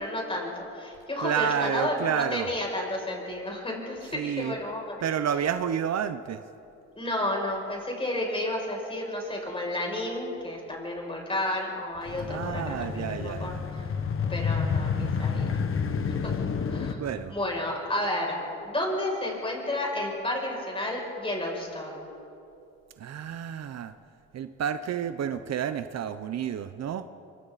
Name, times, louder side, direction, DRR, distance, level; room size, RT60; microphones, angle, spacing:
voice 1, 0.0-5.1 7.0-13.8 14.3-15.6 16.7-22.0, left 1 dB, 20° left, -2 dB, 6.9 m, -31 dB
voice 2, 1.2-2.5 4.1-4.6 5.0-6.4 12.3-13.6 17.0-17.3 23.0-23.9 24.3-27.1, right 8 dB, 60° right, 11 dB, 0.9 m, -30 dB
sound 1, 12.1-16.9, left 6 dB, 45° left, 1.5 m, -29 dB
26.0 x 24.5 x 4.2 m, 2.6 s
cardioid pair, 90°, 30 cm